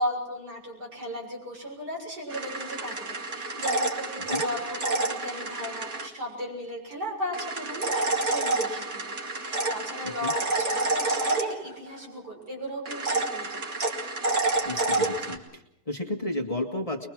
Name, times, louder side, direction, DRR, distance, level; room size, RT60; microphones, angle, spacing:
voice 1, 0.0-9.0 9.3-13.6, left 1 dB, 80° right, -1 dB, 7.2 m, -36 dB
sound 1, 2.3-6.1 7.3-12.0 12.9-15.4, right 3 dB, 45° right, 2.6 m, -29 dB
voice 2, 14.6-17.1, left 1 dB, 20° left, 3 dB, 1.9 m, -32 dB
23.0 x 22.5 x 6.1 m, 0.78 s
omnidirectional pair, 1.7 m